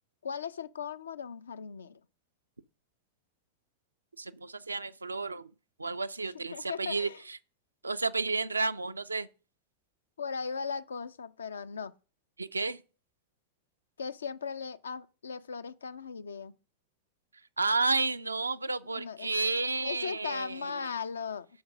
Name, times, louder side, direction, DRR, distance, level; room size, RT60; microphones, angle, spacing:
voice 1, 0.2-2.0 6.5-7.2 10.2-11.9 14.0-16.5 18.9-19.3 19.8-21.5, left 6 dB, 70° left, 0.5 m, -38 dB
voice 2, 4.2-5.5 5.8-7.4 7.8-9.3 12.4-12.8 17.6-20.9, right 3 dB, 80° right, 0.4 m, -31 dB
7.9 x 5.2 x 6.3 m
figure-of-eight pair, 90°, 0 cm